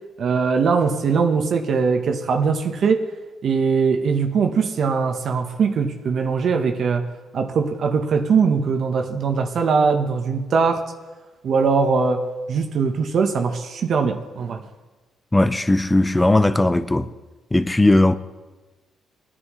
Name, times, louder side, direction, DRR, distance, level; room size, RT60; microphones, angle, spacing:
voice 1, 0.2-3.1 3.4-7.1 7.3-10.9 11.4-14.6, right 5 dB, 60° right, 1.0 m, -21 dB
voice 2, 15.3-17.1 17.5-18.2, left 2 dB, 15° left, 0.6 m, -17 dB
20.0 x 9.9 x 3.1 m
cardioid pair, 90°, 0 cm